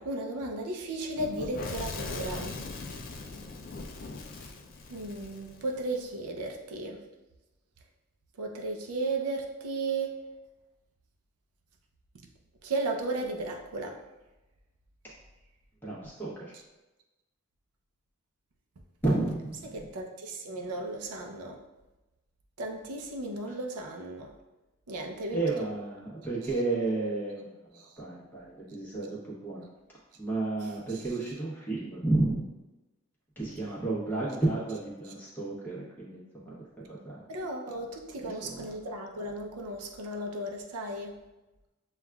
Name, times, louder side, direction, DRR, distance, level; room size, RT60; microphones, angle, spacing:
voice 1, 0.0-2.6 4.9-7.1 8.4-10.2 12.6-14.0 19.7-21.6 22.6-24.3 24.9-25.7 27.7-28.0 30.6-31.0 35.0-35.1 37.3-41.2, right 2 dB, 85° right, 2 dB, 0.5 m, -35 dB
Fire / Explosion, 1.2-6.0, left 3 dB, 40° left, 0.3 m, -40 dB
voice 2, 15.8-16.5 19.0-19.8 25.3-29.1 29.4-29.7 30.2-32.5 33.4-36.5 36.9-37.2 38.2-38.6, right 2 dB, 10° left, -7 dB, 0.9 m, -32 dB
7.0 x 2.4 x 2.3 m, 1.1 s
head